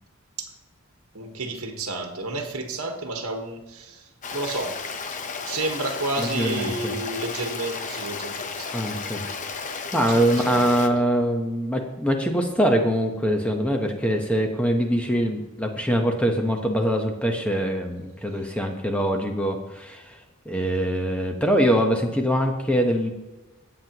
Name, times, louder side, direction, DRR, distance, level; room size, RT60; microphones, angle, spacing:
voice 1, 1.1-4.8 5.4-10.8, right 2 dB, 70° right, 4 dB, 1.3 m, -32 dB
Stream, 4.2-10.9, left 5 dB, 35° left, 0.8 m, -33 dB
voice 2, 6.2-6.9 8.7-9.3 9.9-20.2 20.5-23.1, equal, 5° left, 3 dB, 0.9 m, -23 dB
17.0 x 7.6 x 2.9 m, 1.1 s
head